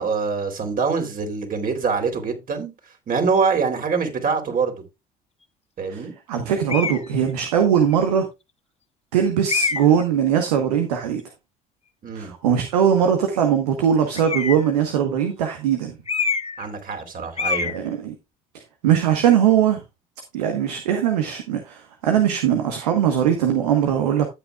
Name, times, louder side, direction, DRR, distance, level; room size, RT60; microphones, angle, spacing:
voice 1, 0.0-2.7 3.1-4.7 5.8-6.1 12.0-12.3 16.6-17.7, right 5 dB, 45° right, 3.7 m, -24 dB
voice 2, 5.9-8.3 9.1-11.2 12.1-16.0 17.7-18.1 18.8-19.8 20.3-24.3, right 9 dB, 85° right, 1.3 m, -20 dB
sound 1, 6.7-7.1 7.9-8.0 9.5-10.0 14.2-14.7 16.1-16.7 16.9-17.1 17.4-17.8, left 5 dB, 30° left, 1.5 m, -25 dB
12.5 x 8.6 x 2.4 m
hypercardioid pair, 60°, 20 cm